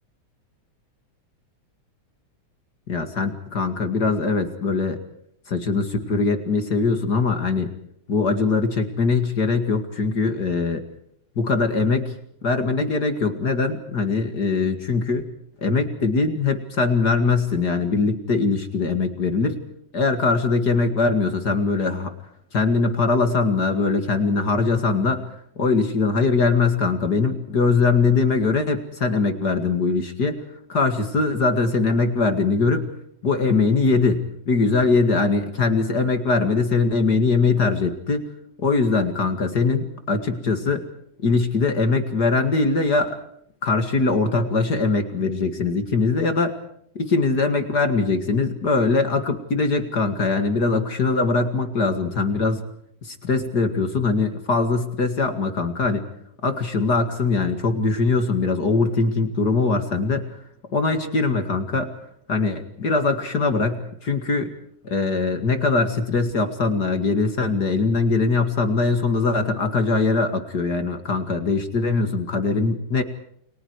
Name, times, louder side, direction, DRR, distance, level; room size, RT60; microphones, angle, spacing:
voice 1, 2.9-5.0 5.5-7.7 8.1-10.8 11.4-12.1 12.4-15.3 15.6-19.6 19.9-22.1 22.5-25.3 25.6-30.4 30.7-32.9 33.2-38.2 38.6-40.8 41.2-43.2 43.6-46.5 47.0-52.6 53.0-56.0 56.4-60.2 60.7-61.9 62.3-64.5 64.8-73.0, left 4 dB, 35° left, 7 dB, 2.2 m, -21 dB
29.5 x 24.0 x 4.8 m, 0.70 s
omnidirectional pair, 3.5 m